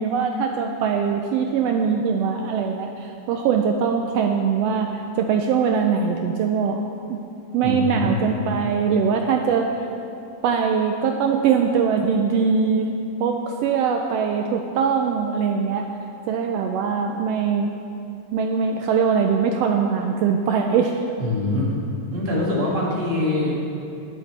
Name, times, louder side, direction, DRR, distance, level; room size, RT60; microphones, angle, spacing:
voice 1, 0.0-4.9 5.2-6.8 7.1-7.2 7.5-9.7 10.4-15.8 16.3-17.7 18.3-21.0, right 6 dB, 85° right, 3 dB, 1.4 m, -22 dB
voice 2, 7.6-8.1 21.2-21.7 22.1-23.5, left 2 dB, 20° right, -5 dB, 1.8 m, -23 dB
21.0 x 7.6 x 3.3 m, 2.7 s
omnidirectional pair, 3.5 m